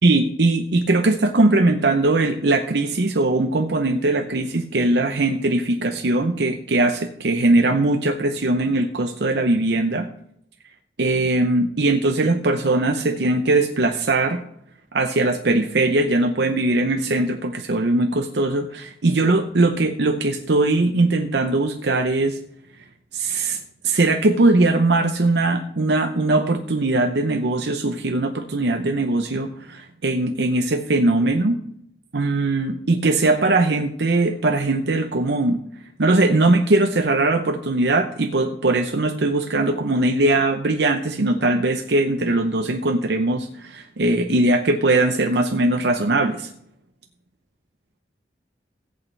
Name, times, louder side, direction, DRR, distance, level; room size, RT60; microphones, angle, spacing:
voice 1, 0.0-10.1 11.0-14.4 14.9-22.4 23.1-31.6 32.1-35.6 36.0-46.5, right 2 dB, 70° right, 5 dB, 0.7 m, -20 dB
15.0 x 8.5 x 3.3 m, 0.74 s
head